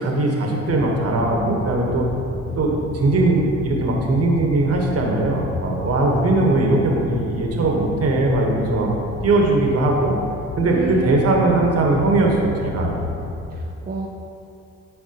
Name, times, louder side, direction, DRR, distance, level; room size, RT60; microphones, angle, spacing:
voice 1, 0.0-2.1 2.6-8.9 9.2-10.2 10.6-13.1, right 2 dB, 55° right, 0 dB, 1.3 m, -20 dB
sound 1, 0.7-13.4, left 3 dB, 45° left, 0.6 m, -33 dB
voice 2, 10.7-11.7 13.5-14.1, right 3 dB, 30° right, -1 dB, 0.6 m, -30 dB
11.5 x 4.3 x 3.0 m, 2.7 s
cardioid pair, 90°, 30 cm